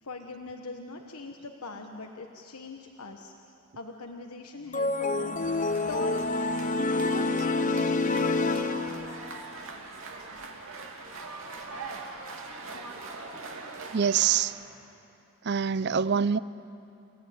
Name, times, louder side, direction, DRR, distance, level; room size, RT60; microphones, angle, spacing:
voice 1, 0.0-3.3 3.7-5.6 5.9-6.3 6.6-8.9, left 3 dB, 85° left, 3 dB, 1.3 m, -41 dB
sound 1, 4.7-9.4, left 3 dB, 35° left, 0.8 m, -27 dB
sound 2, 5.4-14.4, right 3 dB, 65° right, 2.7 m, -42 dB
voice 2, 13.9-14.5 15.5-16.4, right 7 dB, 50° right, 17 dB, 0.5 m, -25 dB
29.5 x 16.5 x 9.4 m, 2.7 s
head